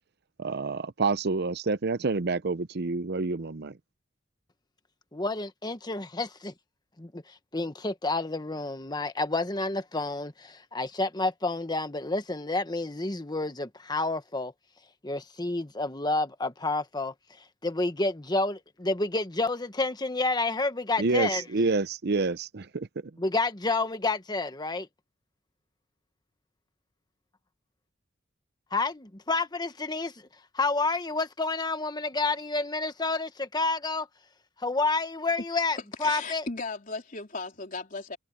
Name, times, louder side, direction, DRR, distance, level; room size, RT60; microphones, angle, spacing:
voice 1, 0.4-3.8 21.0-22.9, right 3 dB, 55° right, 0.7 m, -28 dB
voice 2, 5.1-6.5 7.0-7.2 7.5-14.5 15.0-17.1 17.6-21.4 23.2-24.9 28.7-30.1 30.5-34.1 34.6-36.5, left 3 dB, 20° left, 1.2 m, -29 dB
voice 3, 36.0-38.2, left 3 dB, 45° left, 3.8 m, -36 dB
head